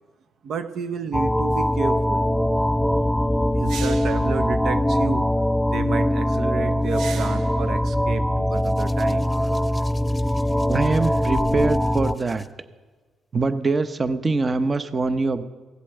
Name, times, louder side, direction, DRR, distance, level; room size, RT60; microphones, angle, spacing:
voice 1, 0.4-2.2 3.6-5.3 5.7-9.3, right 6 dB, 65° right, 8 dB, 0.8 m, -31 dB
sound 1, 1.1-12.1, equal, ahead, 0.4 m, -22 dB
sound 2, 1.5-1.6 3.6-4.3 6.9-7.6, right 6 dB, 80° right, 1.4 m, -37 dB
Hands, 8.5-12.5 13.5-13.7, left 3 dB, 25° left, 0.7 m, -39 dB
voice 2, 10.7-12.5 13.3-15.4, right 3 dB, 30° right, 11 dB, 0.8 m, -23 dB
16.0 x 8.3 x 7.8 m, 1.3 s
cardioid pair, 90°, 0 cm